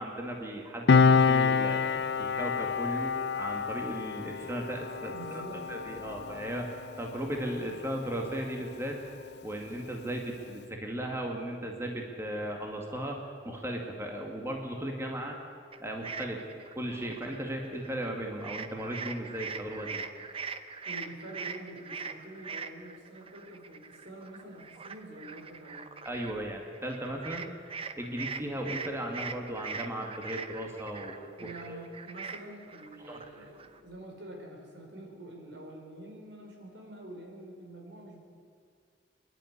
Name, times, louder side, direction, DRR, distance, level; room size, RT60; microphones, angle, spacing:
voice 1, 0.0-5.4 5.7-9.1 9.4-15.4 15.8-16.5 16.8-20.1 26.1-27.5 28.0-31.2 31.4-31.8 33.1-33.2, right 1 dB, 15° right, 1 dB, 2.1 m, -36 dB
Piano, 0.9-7.9 8.2-8.4, left 5 dB, 65° left, 0.4 m, -27 dB
voice 2, 5.1-5.7 5.9-6.4 20.8-25.9 31.4-38.2, right 1 dB, 80° right, 1 dB, 4.9 m, -46 dB
sound 1, 15.7-18.1 18.4-33.8, right 5 dB, 30° right, 0.8 m, -42 dB
26.5 x 11.5 x 9.7 m, 2.1 s
head